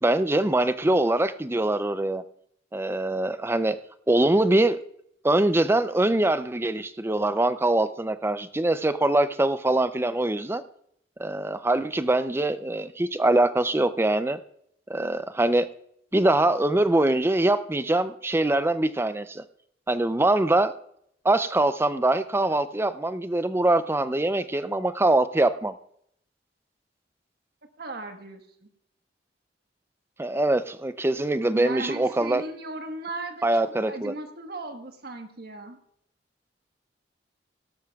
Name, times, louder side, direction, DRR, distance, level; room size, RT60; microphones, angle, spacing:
voice 1, 0.0-2.2 2.7-3.8 4.1-4.8 5.2-10.6 11.2-14.4 14.9-15.7 16.1-19.4 19.9-20.7 21.2-25.7 30.2-32.4 33.4-34.1, right 2 dB, 15° right, 12 dB, 0.5 m, -23 dB
voice 2, 27.8-28.7 31.5-35.8, right 2 dB, 65° right, 5 dB, 1.3 m, -37 dB
17.5 x 12.5 x 2.4 m, 0.70 s
head